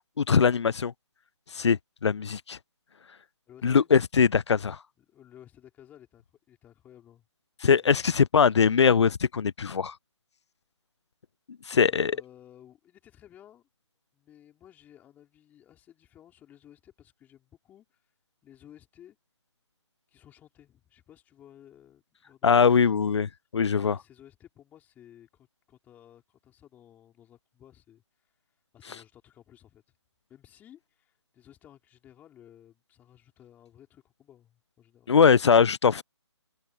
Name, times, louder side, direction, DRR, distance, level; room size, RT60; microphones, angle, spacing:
voice 1, 0.2-0.9 1.5-2.6 3.6-4.8 7.6-9.9 11.7-12.1 22.4-24.0 35.1-36.0, left 6 dB, 65° left, 0.5 m, -21 dB
voice 2, 3.5-3.9 5.0-7.3 7.7-8.0 11.7-13.7 14.1-18.0 18.4-19.2 20.1-22.5 23.8-28.0 28.7-29.8 30.3-35.2, left 11 dB, 10° left, 4.3 m, -55 dB
open air
figure-of-eight pair, 150°, 16 cm